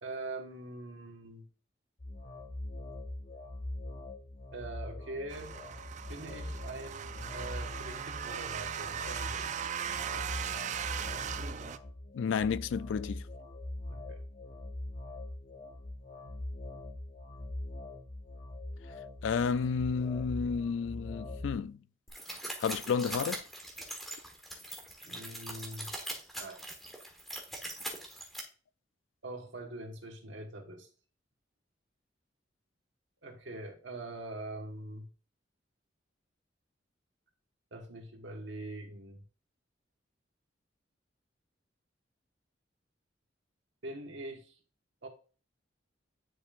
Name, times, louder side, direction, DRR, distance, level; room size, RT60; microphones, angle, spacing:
voice 1, 0.0-1.5 4.5-5.5 6.1-9.5 13.9-14.2 25.0-25.9 26.4-26.6 29.2-30.9 33.2-35.1 37.7-39.2 43.8-44.6 45.0-45.1, right 2 dB, 85° right, 1.4 m, -43 dB
sound 1, 2.0-21.6, left 1 dB, 40° left, 0.7 m, -43 dB
sound 2, 5.3-11.8, right 8 dB, 40° right, 0.4 m, -38 dB
voice 2, 12.1-13.2 19.2-21.8 22.6-23.4, left 6 dB, 90° left, 0.3 m, -31 dB
sound 3, 22.1-28.4, right 1 dB, ahead, 1.3 m, -41 dB
9.7 x 5.1 x 2.5 m
head